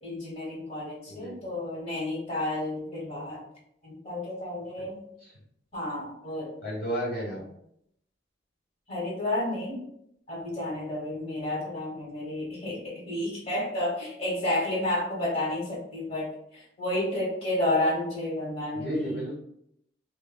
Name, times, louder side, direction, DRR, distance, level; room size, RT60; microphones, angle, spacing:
voice 1, 0.0-3.4 3.8-5.0 5.7-6.5 8.9-9.8 10.3-19.2, left 1 dB, 35° left, -4 dB, 1.2 m, -31 dB
voice 2, 6.6-7.4 18.7-19.3, equal, 55° left, -5 dB, 1.1 m, -32 dB
5.2 x 2.2 x 2.2 m, 0.74 s
head